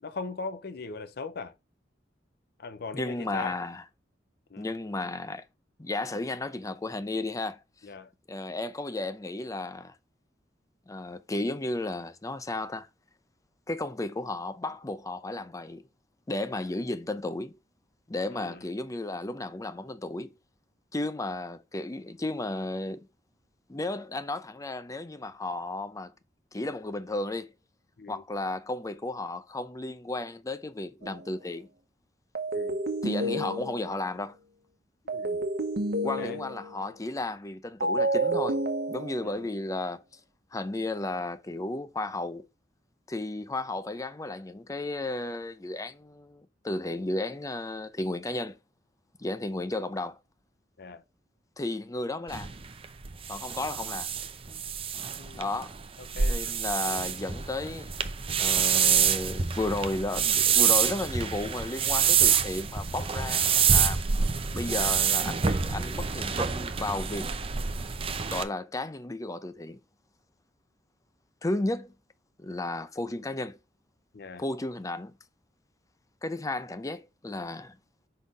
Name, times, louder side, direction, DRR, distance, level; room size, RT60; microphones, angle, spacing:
voice 1, 0.0-1.5 2.6-3.6 4.5-4.7 7.8-8.1 18.3-18.6 28.0-28.2 32.5-32.8 35.0-35.5 36.2-36.4 39.2-39.4 50.8-51.0 55.2-55.5 56.0-56.4 74.1-74.4, left 4 dB, 60° left, 0.6 m, -39 dB
voice 2, 2.9-3.8 4.6-5.4 5.8-7.6 8.3-10.0 10.9-12.9 13.7-15.8 16.3-17.6 18.1-20.3 20.9-23.0 23.7-26.1 26.5-27.5 28.1-31.7 33.0-34.4 36.0-40.0 40.5-42.5 43.1-48.6 49.2-50.2 51.6-52.5 53.3-54.1 55.3-55.7 56.2-57.9 58.4-64.0 64.5-67.3 68.3-69.8 71.4-71.9 72.4-73.6 74.4-75.1 76.2-77.8, left 2 dB, 20° left, 0.6 m, -33 dB
sound 1, 31.0-31.3 32.3-34.1 35.1-36.8 37.8-39.5, right 1 dB, 60° right, 1.1 m, -30 dB
sound 2, 52.3-68.4, right 7 dB, 30° right, 0.6 m, -27 dB
5.5 x 4.1 x 4.9 m
head